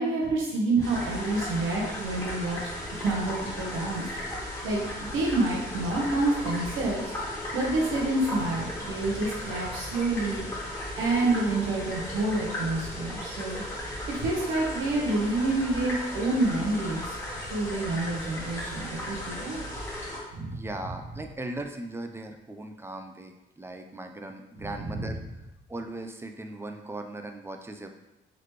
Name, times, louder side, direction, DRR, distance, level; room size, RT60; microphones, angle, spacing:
voice 1, 0.0-2.6 2.9-4.0 4.6-10.5 11.0-17.1 17.4-19.6 20.3-20.6 24.9-25.0, right 2 dB, 85° right, -3 dB, 1.2 m, -28 dB
sound 1, 0.8-20.2, left 1 dB, 15° left, 1.4 m, -36 dB
voice 2, 20.5-25.2 25.7-27.9, right 2 dB, 10° right, 5 dB, 0.4 m, -38 dB
4.0 x 3.0 x 3.2 m, 0.98 s
cardioid pair, 90°, 20 cm